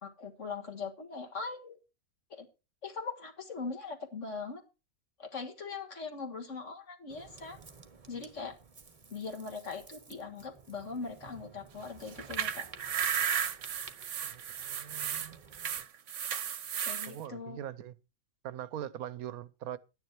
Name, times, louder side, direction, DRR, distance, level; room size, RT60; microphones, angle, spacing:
voice 1, 0.0-1.8 2.3-2.5 2.8-4.6 5.2-7.6 8.1-8.6 9.1-12.7 16.8-17.6, left 4 dB, 55° left, 2.2 m, -41 dB
Ocean, 7.1-15.9, right 4 dB, 30° right, 0.9 m, -54 dB
sound 1, 12.1-17.1, right 8 dB, 60° right, 1.1 m, -34 dB
voice 2, 14.3-15.4 17.0-17.9 18.4-19.8, right 11 dB, 90° right, 1.2 m, -42 dB
11.5 x 9.6 x 4.6 m
omnidirectional pair, 1.5 m